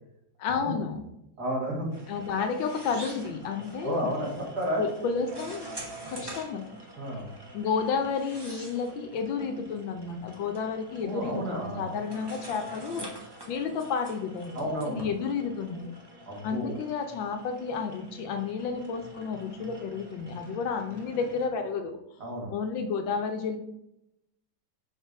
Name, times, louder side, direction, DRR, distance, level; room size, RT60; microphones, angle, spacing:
voice 1, 0.4-1.0 2.1-4.1 4.8-5.7 6.0-6.6 7.5-13.1 13.5-15.9 16.4-22.0 22.5-23.6, left 5 dB, 75° left, 6 dB, 1.3 m, -31 dB
voice 2, 1.4-1.9 3.8-4.9 7.0-7.3 11.0-11.9 14.5-15.1 16.3-16.7 22.2-22.5, equal, 50° right, -2 dB, 2.0 m, -31 dB
sound 1, 1.9-21.5, right 1 dB, 25° right, 0.5 m, -46 dB
5.9 x 4.0 x 4.5 m, 0.81 s
omnidirectional pair, 2.2 m